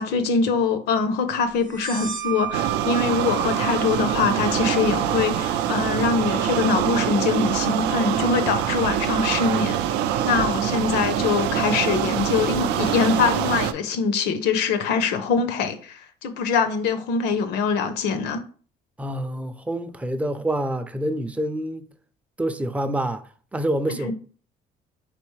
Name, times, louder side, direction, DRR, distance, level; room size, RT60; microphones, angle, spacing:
voice 1, 0.0-9.8 10.2-18.4 24.0-24.1, left 5 dB, 85° left, 0.6 m, -23 dB
sound 1, 1.7-9.0, right 12 dB, 45° right, 0.7 m, -36 dB
sound 2, 2.5-13.7, right 10 dB, 90° right, 0.4 m, -24 dB
voice 2, 19.0-21.9 22.4-24.1, right 1 dB, 10° right, 0.4 m, -27 dB
3.9 x 3.4 x 3.1 m
cardioid pair, 110°, 17 cm